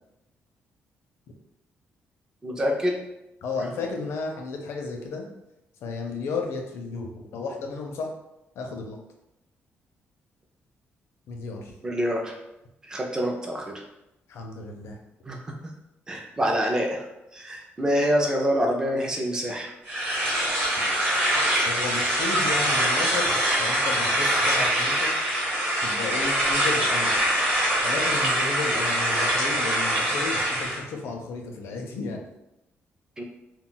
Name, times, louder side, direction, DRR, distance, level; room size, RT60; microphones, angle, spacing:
voice 1, 2.4-3.0 11.8-12.4 12.8-13.7 15.2-15.5 16.1-17.0 17.3-19.7 33.2-33.3, equal, 15° right, 0 dB, 0.4 m, -26 dB
voice 2, 3.4-5.3 5.8-8.1 8.6-9.0 11.3-11.7 14.3-15.0 21.6-25.1 25.8-27.1 27.8-32.2, left 4 dB, 75° left, 2 dB, 0.5 m, -33 dB
sound 1, 19.9-30.8, right 1 dB, 35° right, 1.0 m, -24 dB
2.2 x 2.2 x 3.8 m, 0.90 s
cardioid pair, 180°, 5 cm